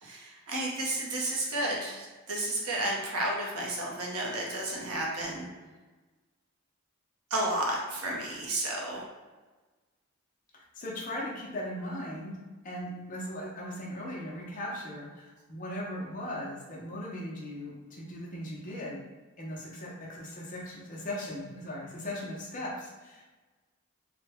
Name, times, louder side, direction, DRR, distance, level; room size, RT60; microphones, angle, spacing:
voice 1, 0.0-5.5 7.3-9.0, right 1 dB, 85° right, -2 dB, 0.8 m, -32 dB
voice 2, 10.5-12.4 12.6-19.0 19.4-23.3, left 1 dB, 35° left, -3 dB, 0.6 m, -38 dB
3.2 x 2.1 x 3.4 m, 1.3 s
head